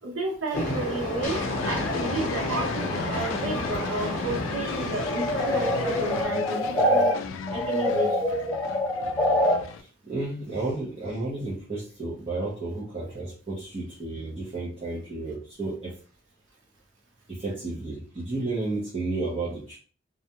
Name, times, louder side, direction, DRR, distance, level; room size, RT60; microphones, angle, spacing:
voice 1, 0.0-7.1 7.5-8.3, right 2 dB, 80° right, 0 dB, 0.7 m, -31 dB
Train, 0.5-6.2, left 1 dB, 45° left, 0.9 m, -31 dB
sound 1, 1.2-9.8, left 6 dB, 90° left, 0.3 m, -36 dB
sound 2, 5.0-7.1 7.5-9.5, left 1 dB, 15° left, 0.7 m, -25 dB
voice 2, 9.8-15.9 17.3-19.8, right 2 dB, 30° right, -8 dB, 0.7 m, -32 dB
2.4 x 2.1 x 2.7 m, 0.41 s
head